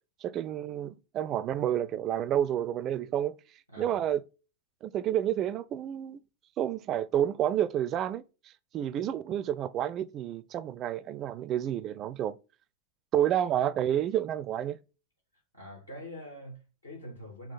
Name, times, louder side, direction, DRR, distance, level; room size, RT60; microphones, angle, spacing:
voice 1, 0.2-3.3 3.8-4.2 4.8-6.2 6.6-8.2 8.7-12.3 13.1-14.8, right 11 dB, 30° right, 0.4 m, -29 dB
voice 2, 3.7-4.0 15.5-17.5, equal, 85° left, 2.6 m, -44 dB
5.4 x 2.3 x 4.1 m
figure-of-eight pair, 90°, 0 cm